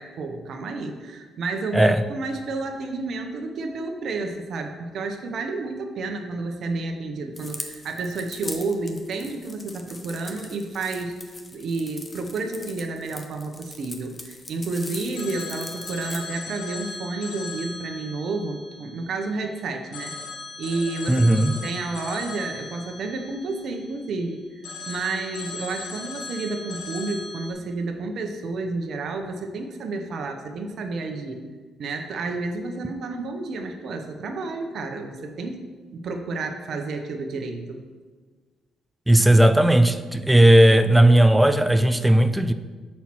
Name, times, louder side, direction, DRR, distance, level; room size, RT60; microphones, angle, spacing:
voice 1, 0.0-11.1 11.5-20.1 20.6-24.4 24.9-31.4 31.8-35.6 35.9-37.8, right 3 dB, 65° right, 4 dB, 0.8 m, -30 dB
sound 1, 7.4-16.2, left 2 dB, 20° left, 0.7 m, -41 dB
Telephone, 15.1-19.4 19.9-24.1 24.6-27.5, left 3 dB, 85° left, 1.0 m, -38 dB
voice 2, 21.1-21.5 39.1-42.5, right 1 dB, 5° right, 10 dB, 0.4 m, -16 dB
5.7 x 4.3 x 6.0 m, 1.4 s
cardioid pair, 90°, 0 cm